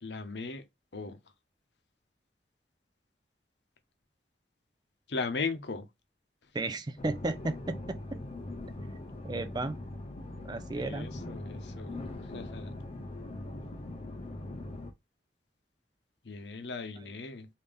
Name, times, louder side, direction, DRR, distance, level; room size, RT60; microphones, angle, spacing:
voice 1, 0.0-0.6 0.9-1.2 5.1-5.9 10.7-12.1 12.3-12.7 16.2-17.5, left 4 dB, 75° left, 0.7 m, -37 dB
voice 2, 6.5-8.2 9.2-9.9 10.4-11.1, right 2 dB, 25° right, 0.4 m, -34 dB
sound 1, 7.0-14.9, left 2 dB, 35° left, 0.6 m, -41 dB
3.4 x 2.7 x 3.4 m
head